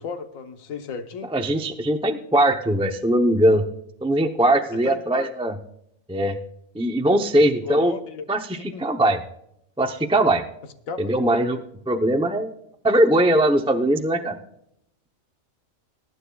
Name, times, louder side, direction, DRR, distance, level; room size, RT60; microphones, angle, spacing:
voice 1, 0.0-1.3 4.8-5.3 7.6-8.3 8.5-8.8 10.9-11.1, left 5 dB, 80° left, 7 dB, 1.4 m, -34 dB
voice 2, 1.3-3.6 4.0-5.5 6.1-6.4 6.7-7.9 8.3-9.2 9.8-10.4 11.0-11.6 11.9-12.5 12.8-14.4, right 1 dB, 10° right, 5 dB, 0.4 m, -20 dB
22.0 x 9.8 x 2.3 m, 0.75 s
omnidirectional pair, 1.4 m